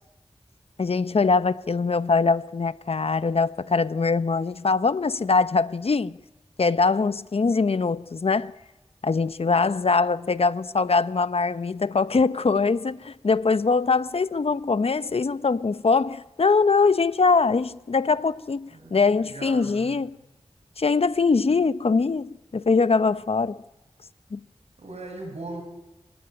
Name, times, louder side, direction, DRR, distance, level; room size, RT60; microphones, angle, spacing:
voice 1, 0.8-6.2 6.6-8.5 9.0-20.2 20.8-23.6 24.3-24.4, left 4 dB, 65° left, 0.8 m, -22 dB
voice 2, 18.7-20.0 24.8-25.6, right 2 dB, 75° right, 7.4 m, -39 dB
25.5 x 17.0 x 9.9 m
wide cardioid pair, 60°, 11 cm